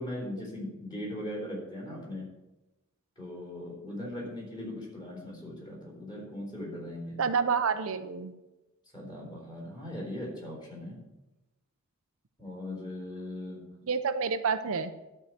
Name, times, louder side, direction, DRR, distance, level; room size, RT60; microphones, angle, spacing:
voice 1, 0.0-2.3 3.2-7.2 8.9-11.0 12.4-13.7, left 1 dB, 20° left, -3 dB, 4.0 m, -39 dB
voice 2, 7.2-8.3 13.9-14.9, right 5 dB, 65° right, 10 dB, 0.6 m, -29 dB
12.0 x 4.7 x 7.8 m, 1.0 s
head